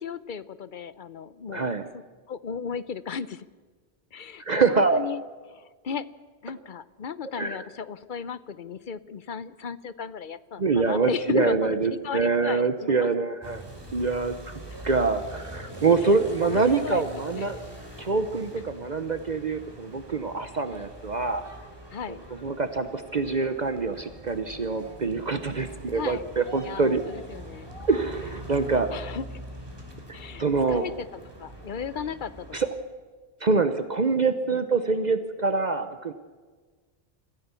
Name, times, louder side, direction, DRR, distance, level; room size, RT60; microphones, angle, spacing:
voice 1, 0.0-3.5 4.1-5.2 5.5-6.1 6.4-11.8 12.0-13.1 16.0-16.1 16.4-17.5 21.9-22.2 25.9-26.2 26.6-27.7 28.9-29.2 30.1-31.1 31.4-32.5, left 7 dB, 55° left, 16 dB, 0.8 m, -35 dB
voice 2, 1.5-1.9 4.4-5.0 7.4-7.6 10.6-13.6 13.9-14.5 14.8-17.6 18.0-21.4 22.4-27.0 27.9-28.9 30.4-30.8 32.5-32.7 33.4-36.1, right 4 dB, 45° right, 9 dB, 0.9 m, -25 dB
sound 1, 13.4-32.7, right 1 dB, 20° right, 3.2 m, -43 dB
26.0 x 15.0 x 7.0 m, 1.4 s
omnidirectional pair, 1.1 m